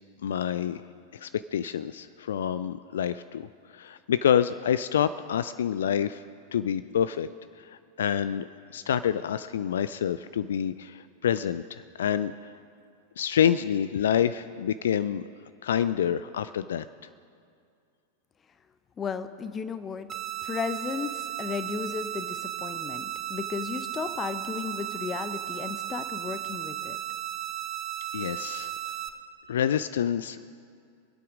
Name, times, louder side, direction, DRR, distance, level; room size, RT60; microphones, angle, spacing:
voice 1, 0.2-0.8 1.1-3.5 3.7-6.2 6.5-7.3 7.6-7.7 8.0-8.5 8.7-12.5 13.2-15.2 15.6-16.9 28.1-28.7 29.5-30.5, left 9 dB, 65° left, 14 dB, 0.3 m, -27 dB
voice 2, 19.0-20.1 20.4-27.0, left 6 dB, 20° left, 11 dB, 0.8 m, -34 dB
sound 1, 20.1-29.1, right 12 dB, 25° right, 0.9 m, -35 dB
25.5 x 8.6 x 5.1 m, 2.4 s
figure-of-eight pair, 90°, 0 cm